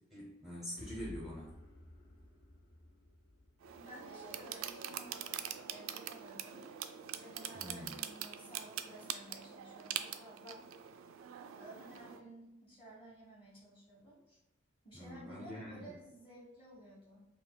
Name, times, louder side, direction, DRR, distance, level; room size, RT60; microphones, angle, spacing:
voice 1, 0.1-1.5 7.5-8.0 14.9-15.9, left 1 dB, ahead, -6 dB, 0.6 m, -45 dB
sound 1, 0.8-4.7, left 1 dB, 55° left, 0.6 m, -54 dB
sound 2, 3.6-12.2, right 9 dB, 80° right, 0.3 m, -44 dB
voice 2, 3.7-6.7 7.2-11.0 11.5-14.4 14.8-17.2, right 1 dB, 30° left, -6 dB, 1.4 m, -54 dB
5.5 x 2.3 x 2.2 m, 1.0 s
head